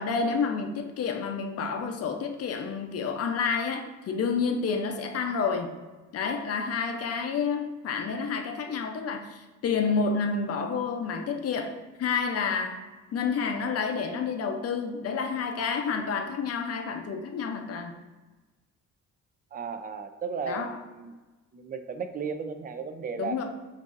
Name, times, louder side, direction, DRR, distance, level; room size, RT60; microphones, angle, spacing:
voice 1, 0.0-5.7 6.1-12.8 13.1-17.9 20.5-20.7 23.2-23.4, left 5 dB, 55° left, 4 dB, 0.6 m, -29 dB
voice 2, 19.5-21.1 21.5-23.4, right 5 dB, 30° right, 8 dB, 0.4 m, -35 dB
6.1 x 2.7 x 2.5 m, 1.2 s
cardioid pair, 90°, 30 cm